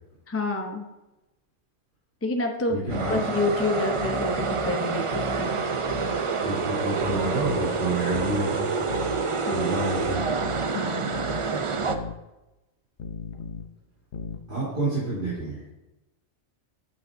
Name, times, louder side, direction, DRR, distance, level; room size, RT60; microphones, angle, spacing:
voice 1, 0.3-0.9 2.2-2.8 3.1-5.5 9.5-9.8 10.7-11.1, left 3 dB, 20° left, 3 dB, 0.4 m, -28 dB
voice 2, 2.7-3.2 6.4-8.6 9.5-10.2 14.5-15.6, right 2 dB, 40° right, -11 dB, 3.4 m, -28 dB
sound 1, 2.9-3.2 4.0-4.7 5.1-5.5 5.9-6.2 7.0-7.7 8.1-8.4 8.9-9.2 10.0-10.7 11.1-11.5 11.9-12.2 13.0-13.7 14.1-14.5, left 4 dB, 65° left, 0.9 m, -36 dB
sound 2, 2.9-12.0, right 5 dB, 55° right, 0.3 m, -27 dB
9.0 x 8.5 x 2.6 m, 1.0 s
omnidirectional pair, 1.3 m